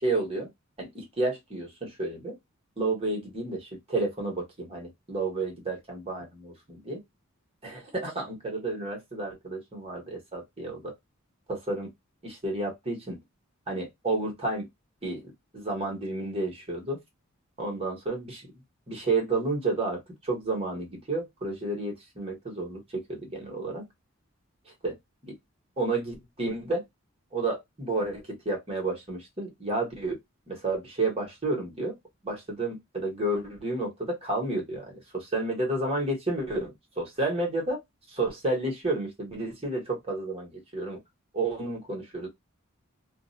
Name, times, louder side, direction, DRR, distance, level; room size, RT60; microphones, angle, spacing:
voice 1, 0.0-0.5 0.8-2.4 2.8-7.0 7.6-10.9 11.5-11.9 12.2-13.2 13.7-14.7 15.0-17.0 17.6-18.5 18.9-23.8 24.8-24.9 25.2-25.3 25.8-26.8 27.3-30.2 30.5-32.0 32.2-37.8 38.1-41.0 41.3-42.3, right 2 dB, 30° right, 1.1 m, -31 dB
2.5 x 2.1 x 2.5 m
head